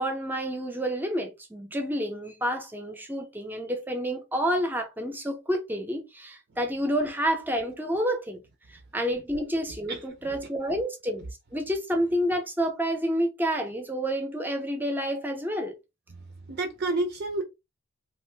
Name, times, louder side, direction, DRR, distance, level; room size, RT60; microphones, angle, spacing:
voice 1, 0.0-8.4 8.9-15.8, equal, 10° right, 0.6 m, -29 dB
voice 2, 16.1-17.4, right 2 dB, 50° right, 0.5 m, -30 dB
2.6 x 2.5 x 3.3 m
head